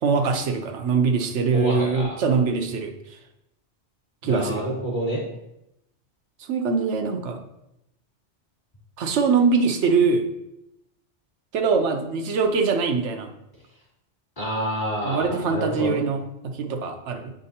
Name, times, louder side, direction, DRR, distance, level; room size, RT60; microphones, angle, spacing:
voice 1, 0.0-3.2 4.2-4.7 6.4-7.4 9.0-10.3 11.5-13.3 15.0-17.3, right 5 dB, 80° right, 5 dB, 1.0 m, -23 dB
voice 2, 1.5-2.1 4.2-5.2 14.4-16.0, equal, 45° left, -6 dB, 2.8 m, -28 dB
8.3 x 5.1 x 2.8 m, 0.84 s
omnidirectional pair, 1.2 m